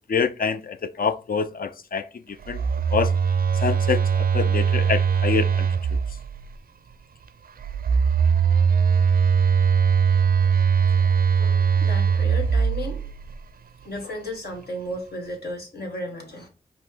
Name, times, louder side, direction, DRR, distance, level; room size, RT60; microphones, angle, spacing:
voice 1, 0.1-2.6 2.9-3.1 3.5-5.7, left 6 dB, 60° left, 0.5 m, -26 dB
Telephone, 2.4-6.5 7.6-13.3, right 6 dB, 65° right, 0.4 m, -21 dB
voice 2, 11.4-13.1 13.8-16.5, left 1 dB, 80° left, 1.4 m, -34 dB
5.5 x 2.0 x 4.8 m
cardioid pair, 50°, 16 cm